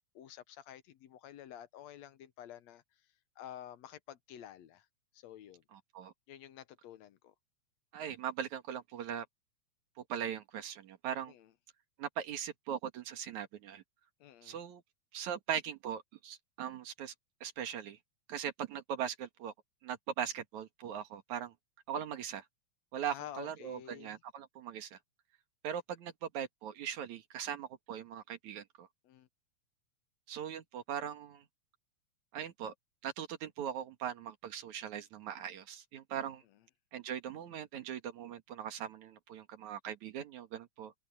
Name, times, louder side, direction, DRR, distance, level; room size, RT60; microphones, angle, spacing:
voice 1, 0.2-2.8 3.4-4.9 5.1-5.6 6.3-7.3 11.3-11.5 14.2-14.6 23.1-24.2 29.0-29.3, left 11 dB, 70° left, 2.0 m, -50 dB
voice 2, 5.7-6.1 7.9-9.3 10.0-11.3 12.0-13.8 14.4-14.8 15.1-17.1 17.4-18.0 18.3-19.5 19.8-21.5 21.9-22.4 22.9-25.0 25.6-28.9 30.3-31.4 32.3-32.7 33.0-36.4 36.9-40.9, right 9 dB, 80° right, 3.1 m, -40 dB
open air
omnidirectional pair, 3.3 m